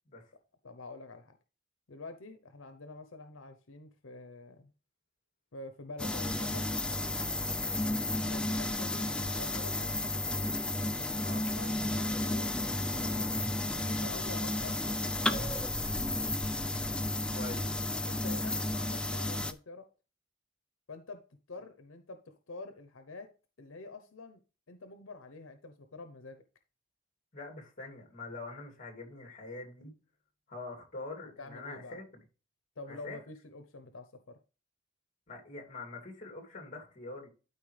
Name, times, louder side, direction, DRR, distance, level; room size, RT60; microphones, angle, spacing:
voice 1, 0.6-1.3 1.9-4.7 5.5-6.7 8.1-10.0 11.5-12.6 12.9-13.3 13.8-15.5 18.1-19.9 20.9-21.2 21.5-23.3 23.6-24.4 24.7-26.4 31.2-32.0 32.8-34.4, left 3 dB, 85° left, 0.9 m, -47 dB
sound 1, 6.0-19.5, left 1 dB, 5° left, 0.4 m, -32 dB
voice 2, 7.6-7.9 11.2-11.4 17.3-17.7 27.3-29.9 30.5-32.2 32.9-33.2 35.3-37.3, left 3 dB, 40° left, 2.6 m, -44 dB
12.5 x 4.6 x 3.3 m
head